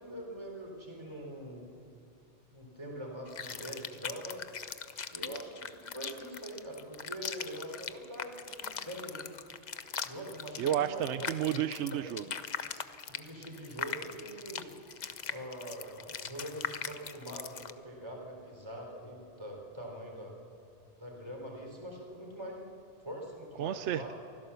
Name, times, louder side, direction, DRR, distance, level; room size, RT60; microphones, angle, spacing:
voice 1, 0.0-1.7 2.5-4.5 5.1-9.3 10.0-11.3 11.9-12.0 13.1-14.7 15.3-20.3 21.0-22.7 23.0-24.1, equal, 25° right, 0 dB, 4.0 m, -43 dB
sound 1, 3.3-17.7, left 6 dB, 45° left, 0.8 m, -41 dB
voice 2, 10.6-12.2 23.6-24.1, right 10 dB, 80° right, 11 dB, 0.9 m, -31 dB
24.0 x 16.0 x 7.0 m, 2.7 s
omnidirectional pair, 1.2 m